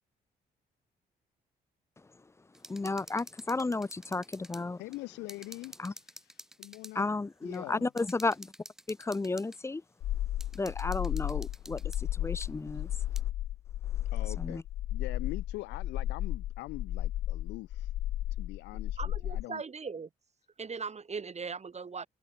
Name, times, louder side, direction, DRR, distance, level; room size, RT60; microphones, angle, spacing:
sound 1, 2.5-4.6 4.9-5.0 5.3-7.0 7.5-7.6 8.0-9.6 10.4-12.0 12.4-12.5 13.2-13.3, equal, 5° right, 7.7 m, -50 dB
voice 1, 2.7-4.8 5.8-5.9 6.9-8.5 8.9-9.8 10.5-12.9 14.4-14.6, left 3 dB, 15° left, 0.5 m, -33 dB
voice 2, 4.8-7.1 7.4-7.9 14.1-14.6 14.9-17.9 18.4-19.0 19.2-19.6, left 21 dB, 85° left, 0.7 m, -43 dB
sound 2, 10.0-19.4, left 13 dB, 70° left, 1.0 m, -34 dB
voice 3, 19.0-20.1 20.6-22.1, right 5 dB, 40° right, 4.4 m, -39 dB
supercardioid pair, 65°, 18 cm